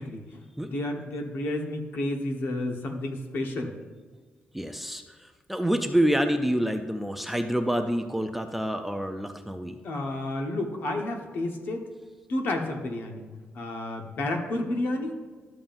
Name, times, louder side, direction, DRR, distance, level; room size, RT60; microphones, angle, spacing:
voice 1, 0.0-3.7 9.8-11.9 12.3-15.1, left 1 dB, 55° left, 3 dB, 1.2 m, -31 dB
voice 2, 4.5-9.7, equal, 5° right, 5 dB, 0.4 m, -27 dB
12.5 x 7.2 x 2.6 m, 1.5 s
cardioid pair, 155°, 4 cm